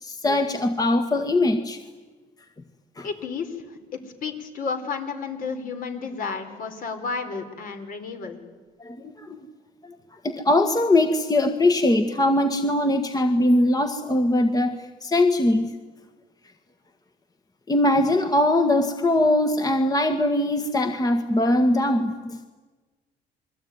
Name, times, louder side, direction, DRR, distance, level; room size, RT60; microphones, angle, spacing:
voice 1, 0.0-1.8 3.0-3.1 8.8-9.4 9.8-10.0 10.2-15.7 17.7-22.5, left 1 dB, 20° left, 7 dB, 1.7 m, -21 dB
voice 2, 3.0-3.6 3.9-8.4, left 5 dB, 55° left, 6 dB, 4.5 m, -32 dB
28.0 x 22.0 x 9.5 m, 1.3 s
cardioid pair, 110°, 17 cm